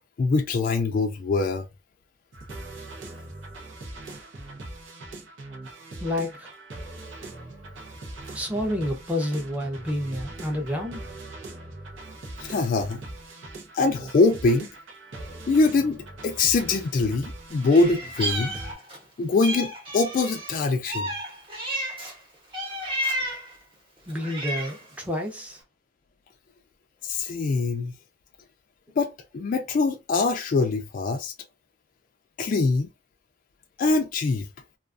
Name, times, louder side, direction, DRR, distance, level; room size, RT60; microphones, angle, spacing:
voice 1, 0.2-1.7 12.4-13.0 13.7-14.7 15.5-18.5 19.2-21.1 27.0-27.9 29.0-31.3 32.4-32.9 33.8-34.5, left 3 dB, 45° left, 0.3 m, -23 dB
sound 1, 2.3-18.7, right 2 dB, 85° right, 0.7 m, -41 dB
voice 2, 6.0-6.5 8.3-11.0 24.1-25.6, left 1 dB, 10° right, 0.5 m, -29 dB
Meow, 17.7-19.0 19.4-22.2 22.5-23.5 24.1-24.9, right 1 dB, 30° right, 1.0 m, -32 dB
2.3 x 2.3 x 2.4 m
head